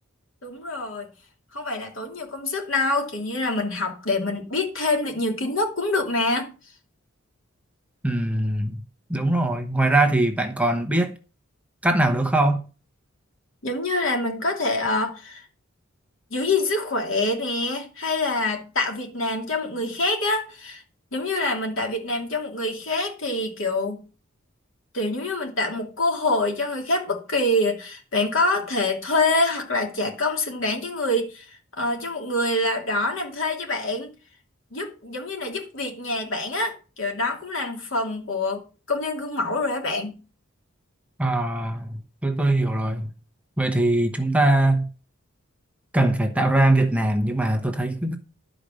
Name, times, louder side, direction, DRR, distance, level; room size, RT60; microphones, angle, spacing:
voice 1, 0.4-1.1 1.5-6.5 13.6-15.5 16.3-20.8 21.1-24.0 24.9-34.1 34.7-38.6 38.9-40.2, left 2 dB, 65° left, 2.7 m, -26 dB
voice 2, 8.0-8.8 9.1-11.2 11.8-12.6 41.2-43.1 43.6-44.9 45.9-48.2, right 2 dB, 5° right, 0.9 m, -21 dB
11.5 x 5.1 x 6.4 m
head